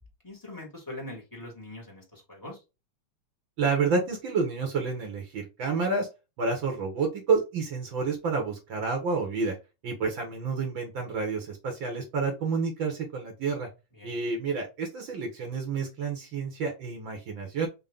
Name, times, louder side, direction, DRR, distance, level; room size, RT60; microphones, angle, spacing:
voice 1, 0.2-2.6 14.0-14.1, left 1 dB, 15° left, -2 dB, 0.7 m, -42 dB
voice 2, 3.6-6.1 6.4-9.6 9.8-13.7 14.0-17.7, right 4 dB, 75° right, 3 dB, 1.1 m, -29 dB
5.4 x 2.1 x 3.6 m, 0.26 s
omnidirectional pair, 3.7 m